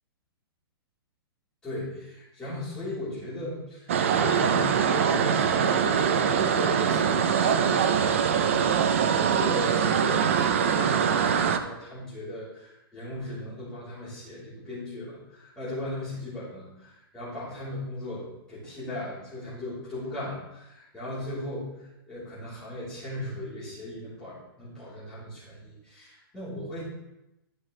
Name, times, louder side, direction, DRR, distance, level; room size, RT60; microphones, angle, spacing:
voice 1, 1.6-26.8, left 1 dB, 5° left, -12 dB, 3.5 m, -38 dB
sound 1, 3.9-11.6, right 7 dB, 30° right, 0.5 m, -23 dB
12.0 x 5.7 x 3.2 m, 0.92 s
hypercardioid pair, 180°, 13 cm